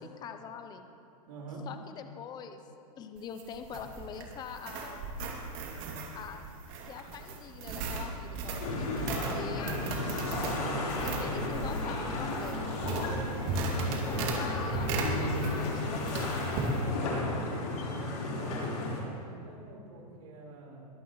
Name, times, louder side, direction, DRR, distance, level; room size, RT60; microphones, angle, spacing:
voice 1, 0.2-0.9 1.7-2.6 3.0-5.0 6.1-6.5 6.8-9.8 11.0-12.6 14.2-16.4, left 7 dB, 20° left, 7 dB, 0.7 m, -44 dB
voice 2, 1.3-1.6 10.5-11.5 16.6-20.8, right 3 dB, 70° right, -2 dB, 4.5 m, -46 dB
Squeaky stairs, 3.2-15.8 16.1-16.7, right 3 dB, 45° right, 2.6 m, -36 dB
sound 1, 8.6-19.0, left 2 dB, 70° left, 4.1 m, -34 dB
sound 2, 12.0-15.7, right 1 dB, 35° left, 2.8 m, -43 dB
22.0 x 14.5 x 3.2 m, 2.6 s
hypercardioid pair, 140°, 20 cm